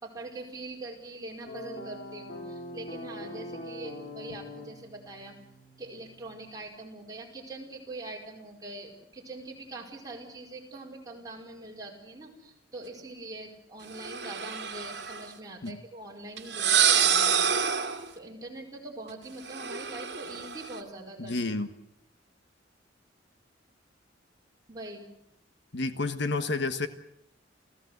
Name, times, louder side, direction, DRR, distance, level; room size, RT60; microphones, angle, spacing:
voice 1, 0.0-5.4 5.8-17.6 18.1-21.4 24.7-25.1, right 2 dB, 20° right, 0 dB, 4.8 m, -43 dB
sound 1, 1.5-6.5, left 1 dB, 45° left, 5.4 m, -43 dB
sound 2, 13.9-15.3 16.4-18.1 19.5-20.8, right 8 dB, 60° right, 2.3 m, -27 dB
voice 2, 21.2-21.7 25.7-26.9, left 3 dB, 65° left, 9 dB, 1.4 m, -30 dB
29.0 x 16.0 x 8.1 m, 0.80 s
head